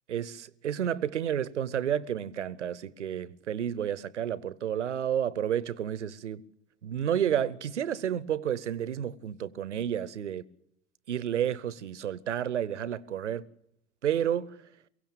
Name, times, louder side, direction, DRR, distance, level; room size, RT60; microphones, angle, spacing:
voice 1, 0.1-6.4 6.8-10.4 11.1-13.4 14.0-14.6, right 9 dB, 80° right, 0.8 m, -31 dB
23.0 x 16.5 x 9.1 m
figure-of-eight pair, 75°, 35 cm